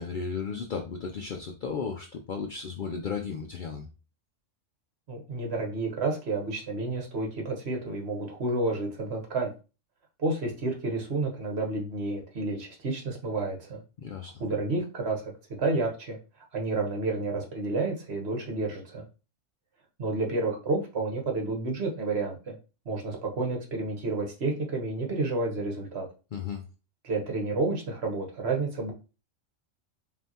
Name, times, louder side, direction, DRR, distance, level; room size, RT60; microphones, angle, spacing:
voice 1, 0.0-3.9 14.0-14.3 26.3-26.6, left 5 dB, 60° left, 3 dB, 0.5 m, -34 dB
voice 2, 5.1-9.5 10.2-13.8 14.4-15.2 15.6-16.2 16.5-19.0 20.0-22.6 22.8-26.1 27.0-28.9, right 3 dB, 55° right, 2 dB, 1.3 m, -30 dB
5.4 x 2.6 x 2.8 m, 0.32 s
omnidirectional pair, 1.3 m